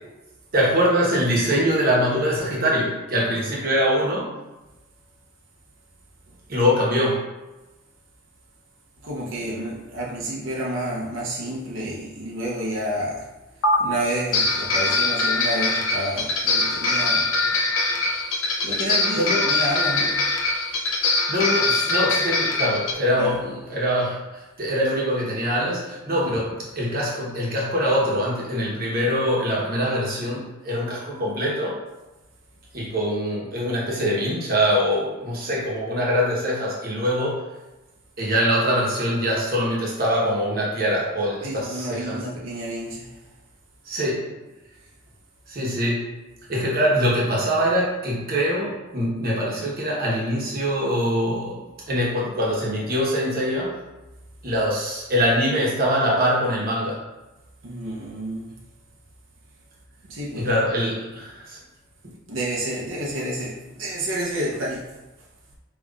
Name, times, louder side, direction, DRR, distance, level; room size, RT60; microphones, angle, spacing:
voice 1, 0.5-4.3 6.5-7.2 19.2-19.4 21.3-24.2 24.6-31.7 32.7-37.4 38.2-42.2 43.9-44.3 45.5-46.0 46.5-53.7 54.4-57.0 60.3-61.6, equal, 45° right, -4 dB, 1.0 m, -23 dB
voice 2, 9.0-13.3 13.8-17.3 18.6-20.2 23.2-23.3 26.1-26.4 35.5-35.6 41.4-43.2 57.6-58.6 60.0-60.6 62.3-64.9, right 1 dB, 80° right, -4 dB, 0.7 m, -30 dB
sound 1, 13.6-13.8 14.3-22.9, left 3 dB, 80° left, 0.6 m, -23 dB
5.3 x 3.0 x 2.4 m, 1.1 s
head